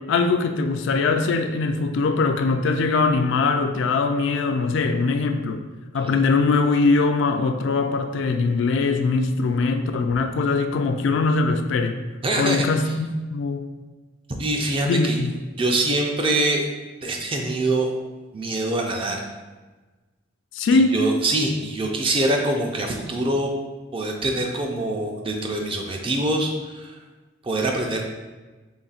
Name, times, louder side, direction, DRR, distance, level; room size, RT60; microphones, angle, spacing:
voice 1, 0.1-5.7 5.9-12.0 12.4-13.6 14.9-15.3 20.5-20.9, left 3 dB, 65° left, 6 dB, 0.3 m, -21 dB
voice 2, 12.2-12.7 14.4-15.2 15.6-16.7 17.0-17.9 18.3-19.2 20.7-23.5 23.9-26.9 27.4-28.0, right 2 dB, 25° right, 1 dB, 0.4 m, -24 dB
3.9 x 3.6 x 2.4 m, 1.3 s
head